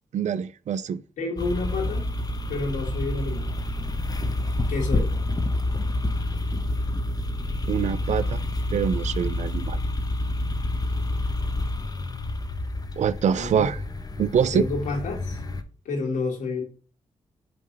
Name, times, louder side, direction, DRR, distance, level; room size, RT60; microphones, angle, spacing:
voice 1, 0.1-1.0 7.7-8.4 8.7-9.8 13.0-13.8 14.2-14.7, right 8 dB, 70° right, 0.5 m, -25 dB
voice 2, 1.2-2.1 2.5-3.5 4.7-5.1 13.3-13.7 14.5-15.4 15.9-16.6, left 3 dB, 90° left, 2.1 m, -29 dB
sound 1, 1.4-15.6, left 2 dB, 30° left, 0.9 m, -28 dB
5.3 x 4.0 x 5.4 m
cardioid pair, 65°, 13 cm